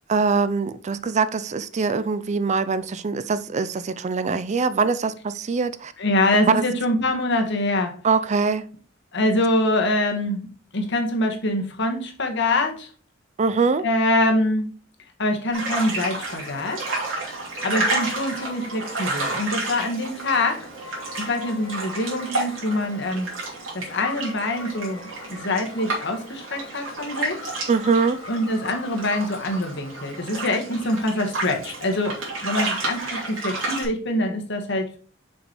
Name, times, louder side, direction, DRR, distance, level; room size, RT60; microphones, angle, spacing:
voice 1, 0.1-5.9 6.5-6.6 8.0-8.7 13.4-13.8 27.7-28.2, right 4 dB, 35° right, 0.4 m, -23 dB
voice 2, 6.0-7.9 9.1-10.4 10.7-12.9 13.8-14.6 15.2-16.8 17.6-20.7 21.2-23.3 23.7-27.5 28.3-35.0, left 1 dB, 65° left, 1.5 m, -24 dB
sound 1, 15.5-33.8, right 2 dB, 85° right, 3.1 m, -31 dB
sound 2, 17.6-30.6, left 3 dB, 80° left, 2.5 m, -43 dB
6.6 x 5.2 x 3.1 m
head